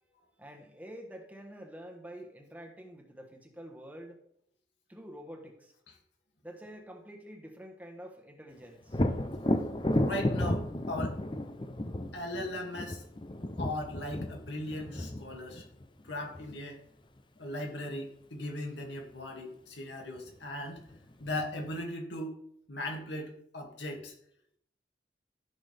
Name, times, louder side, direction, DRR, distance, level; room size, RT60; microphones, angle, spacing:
voice 1, 0.4-4.2 4.9-5.7 6.4-9.0, equal, 10° right, 2 dB, 1.2 m, -47 dB
Thunder, 8.9-16.6 20.2-20.3 20.8-21.7, left 1 dB, 25° left, 0.6 m, -33 dB
voice 2, 10.0-11.2 12.1-13.0 13.6-15.6 16.0-16.8 17.4-20.8 21.2-22.3 22.7-24.1, left 1 dB, 85° left, 1 dB, 2.3 m, -38 dB
14.5 x 6.1 x 3.4 m, 0.70 s
head